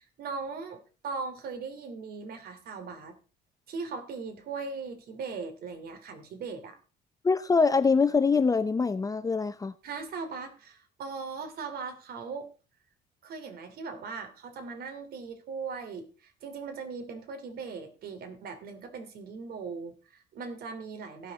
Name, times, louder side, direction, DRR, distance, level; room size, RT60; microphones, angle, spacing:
voice 1, 0.0-3.2 3.7-6.8 9.8-12.5 13.2-21.3, right 4 dB, 65° right, 6 dB, 2.9 m, -39 dB
voice 2, 7.2-9.7, left 4 dB, 20° left, 12 dB, 0.6 m, -24 dB
16.5 x 6.6 x 4.1 m, 0.35 s
cardioid pair, 110°, 17 cm